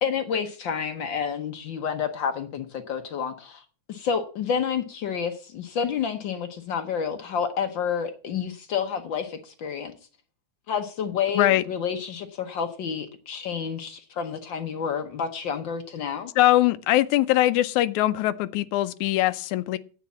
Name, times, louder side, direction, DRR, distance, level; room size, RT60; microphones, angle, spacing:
voice 1, 0.0-3.6 3.9-9.9 10.7-16.3, left 7 dB, 70° left, 1.1 m, -29 dB
voice 2, 16.4-19.8, left 15 dB, 85° left, 2.1 m, -21 dB
9.8 x 8.5 x 7.1 m
omnidirectional pair, 3.3 m